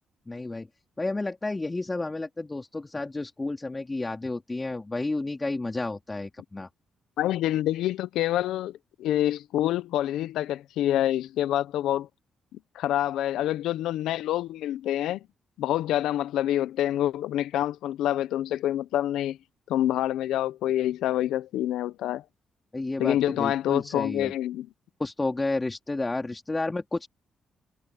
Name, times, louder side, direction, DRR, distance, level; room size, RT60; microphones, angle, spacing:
voice 1, 0.3-0.7 1.0-6.7 22.7-24.3 25.0-27.1, left 2 dB, 25° left, 3.9 m, -31 dB
voice 2, 7.2-12.1 12.5-15.2 15.6-19.4 19.7-22.2 23.0-24.7, left 12 dB, 80° left, 1.1 m, -27 dB
supercardioid pair, 50°, 0 cm